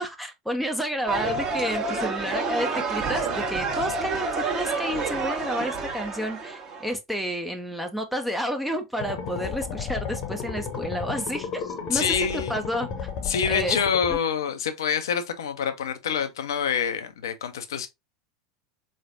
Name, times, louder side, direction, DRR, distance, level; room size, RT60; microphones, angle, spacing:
voice 1, 0.0-12.9 13.5-13.8 14.1-14.2, equal, ahead, 0.6 m, -30 dB
sound 1, 1.1-6.9, right 4 dB, 30° right, 1.3 m, -29 dB
sound 2, 9.0-14.2, left 6 dB, 40° left, 0.9 m, -33 dB
voice 2, 11.8-12.6 13.2-17.9, left 7 dB, 65° left, 0.6 m, -26 dB
4.0 x 3.2 x 2.5 m
figure-of-eight pair, 80°, 2 cm